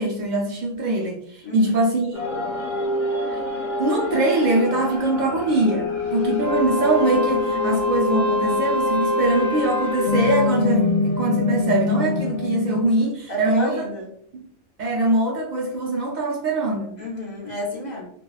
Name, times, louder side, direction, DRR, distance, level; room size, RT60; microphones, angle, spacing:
voice 1, 0.0-2.4 3.3-3.4 3.8-13.9 14.3-14.4 14.8-16.9, right 2 dB, 75° right, -1 dB, 0.4 m, -22 dB
sound 1, 2.1-12.8, left 4 dB, 65° left, 1.2 m, -26 dB
Wind instrument woodwind instrument, 6.3-10.6, left 2 dB, 35° right, 0.7 m, -26 dB
voice 2, 13.3-14.1 17.0-18.1, left 1 dB, 40° left, -4 dB, 0.7 m, -31 dB
2.7 x 2.1 x 2.3 m, 0.68 s
omnidirectional pair, 1.3 m